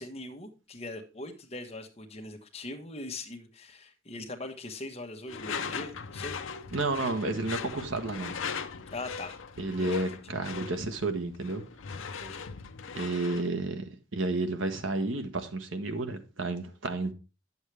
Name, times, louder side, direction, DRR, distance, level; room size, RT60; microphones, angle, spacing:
voice 1, 0.0-6.4 8.9-9.4 9.8-10.0 12.2-12.5, left 2 dB, 30° left, 1.2 m, -41 dB
Door / Screech, 5.3-13.5, left 6 dB, 80° left, 0.7 m, -39 dB
voice 2, 6.7-8.3 9.6-11.6 12.9-17.1, right 2 dB, 80° right, 1.2 m, -31 dB
9.9 x 7.2 x 3.3 m
head